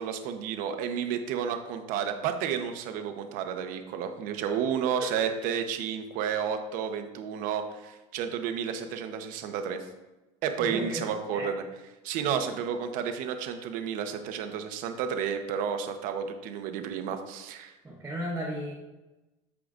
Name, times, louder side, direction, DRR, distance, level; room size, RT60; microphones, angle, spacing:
voice 1, 0.0-9.9 10.4-11.6 12.0-17.8, right 7 dB, 60° right, 7 dB, 0.9 m, -31 dB
voice 2, 10.6-11.0 11.3-11.5 17.8-18.7, equal, 15° right, -6 dB, 1.3 m, -35 dB
14.0 x 4.9 x 2.5 m, 1.1 s
supercardioid pair, 125°, 16 cm